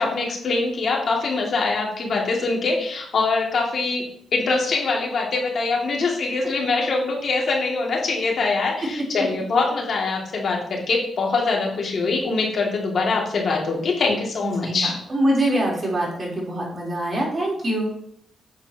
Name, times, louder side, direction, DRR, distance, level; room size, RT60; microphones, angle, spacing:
voice 1, 0.0-4.0 4.3-14.9, left 3 dB, 60° left, -1 dB, 2.2 m, -23 dB
voice 2, 14.4-17.9, right 1 dB, 40° right, -3 dB, 3.5 m, -24 dB
8.8 x 8.0 x 2.9 m, 0.68 s
cardioid pair, 95°, 0 cm